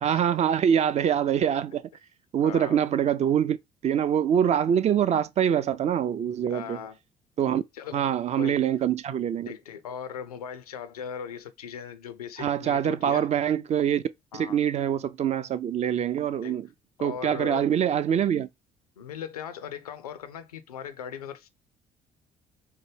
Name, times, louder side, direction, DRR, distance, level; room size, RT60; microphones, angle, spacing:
voice 1, 0.0-1.9 2.3-3.6 3.8-6.8 7.4-7.6 7.9-9.5 12.4-14.0 14.3-16.7 17.0-18.5, right 9 dB, 35° right, 0.4 m, -24 dB
voice 2, 2.4-2.8 6.5-7.0 7.7-8.6 9.5-13.3 14.3-14.6 16.4-16.6 17.0-17.7 19.0-21.5, left 8 dB, 85° left, 0.4 m, -39 dB
4.7 x 2.1 x 3.2 m
figure-of-eight pair, 50°, 19 cm